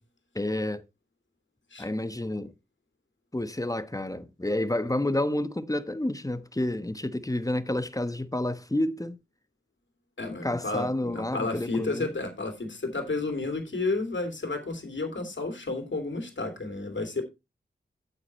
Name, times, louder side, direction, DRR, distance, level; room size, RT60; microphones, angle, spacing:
voice 1, 0.3-0.8 1.8-2.5 3.3-9.2 10.4-12.1, left 1 dB, 15° left, 1.1 m, -29 dB
voice 2, 10.2-17.2, left 3 dB, 65° left, 2.9 m, -31 dB
8.2 x 8.2 x 4.3 m
cardioid pair, 40°, 20 cm